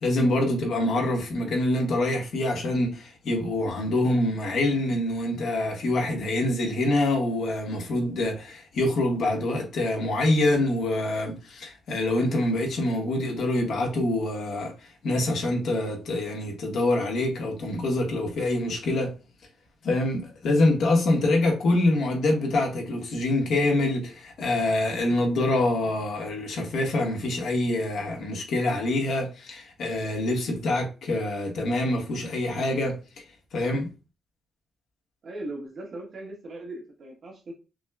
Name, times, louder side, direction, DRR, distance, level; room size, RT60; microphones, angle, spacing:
voice 1, 0.0-14.7 15.0-19.1 19.8-33.2 33.5-33.9, left 1 dB, 70° left, 1.3 m, -25 dB
voice 2, 35.2-37.5, right 2 dB, 50° right, 1.3 m, -39 dB
6.1 x 2.2 x 2.4 m
cardioid pair, 150°, 0 cm